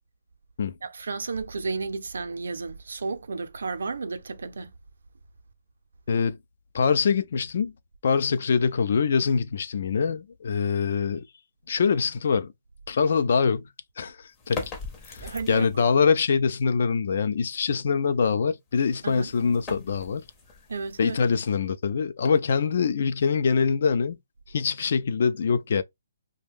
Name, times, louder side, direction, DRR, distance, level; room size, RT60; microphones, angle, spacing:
voice 1, 0.8-4.7 15.2-15.7 19.0-19.3 20.7-21.2, right 4 dB, 80° right, 0.6 m, -32 dB
voice 2, 6.7-7.7 8.0-11.2 11.7-12.5 12.9-13.7 14.0-14.7 15.1-20.2 21.0-24.2 24.5-25.8, left 5 dB, 55° left, 0.5 m, -24 dB
sound 1, 14.3-16.0 18.7-21.6, left 4 dB, 15° left, 0.7 m, -41 dB
2.6 x 2.2 x 3.4 m
hypercardioid pair, 165°, 0 cm